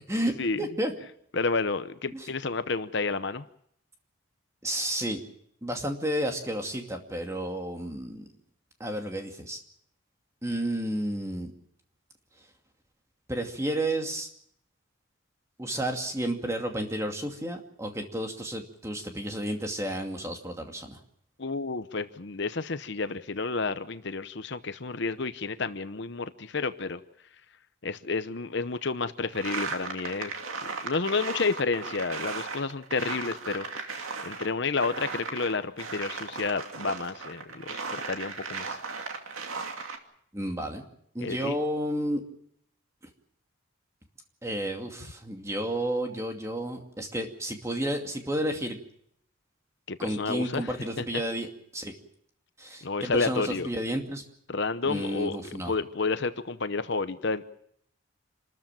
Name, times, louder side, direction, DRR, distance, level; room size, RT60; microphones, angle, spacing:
voice 1, 0.1-0.9 2.1-2.3 4.6-5.2 5.6-8.2 8.8-9.6 10.4-11.5 13.3-14.3 15.6-21.0 40.3-40.8 41.1-42.2 44.4-48.8 50.0-51.9 52.6-54.2 54.8-55.7, right 1 dB, 15° right, 3 dB, 2.5 m, -31 dB
voice 2, 1.3-3.4 21.4-27.0 27.8-30.4 30.8-38.8 41.2-41.6 49.9-51.0 52.8-53.7 54.5-55.4 55.7-57.4, left 4 dB, 55° left, 11 dB, 0.9 m, -30 dB
sound 1, 29.3-34.5 34.8-40.0, right 4 dB, 75° right, 2.5 m, -36 dB
27.5 x 13.5 x 9.0 m, 0.70 s
head